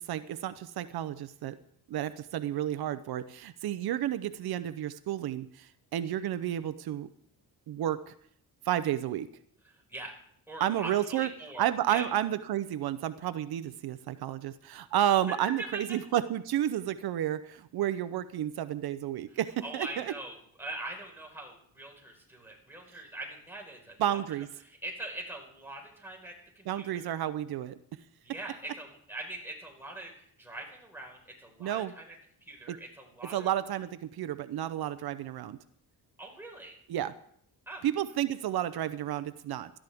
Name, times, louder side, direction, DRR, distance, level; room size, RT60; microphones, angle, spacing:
voice 1, 0.1-1.5 1.9-7.1 7.7-8.1 8.7-9.3 10.6-11.3 11.6-20.1 24.0-24.5 26.7-27.7 31.6-31.9 32.7-32.8 33.3-35.6 36.9-37.1 37.8-39.7, right 11 dB, 80° right, 13 dB, 0.7 m, -31 dB
voice 2, 9.6-10.1 10.5-12.0 15.6-16.0 19.6-24.2 24.6-27.1 28.2-32.1 32.4-33.5 36.2-36.7 37.7-37.8, right 2 dB, 5° right, 0 dB, 4.6 m, -43 dB
17.5 x 13.0 x 3.5 m, 0.66 s
cardioid pair, 110°, 37 cm